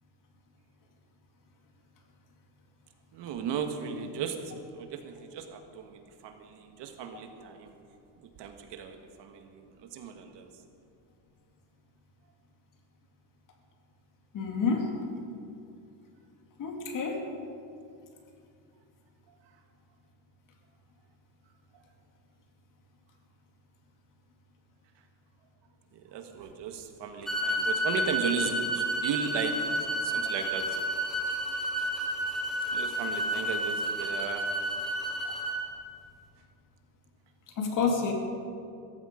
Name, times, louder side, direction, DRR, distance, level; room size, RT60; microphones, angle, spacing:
voice 1, 3.1-7.7 8.4-10.5 19.3-19.4 25.9-29.7 30.0-30.8 32.7-34.5, right 6 dB, 60° right, 6 dB, 1.7 m, -36 dB
voice 2, 14.3-15.0 16.6-17.3 35.3-35.4 37.6-38.1, left 5 dB, 40° left, 2 dB, 2.3 m, -29 dB
sound 1, 27.3-35.6, right 1 dB, ahead, 2.8 m, -31 dB
16.0 x 14.5 x 5.1 m, 2.5 s
cardioid pair, 155°, 47 cm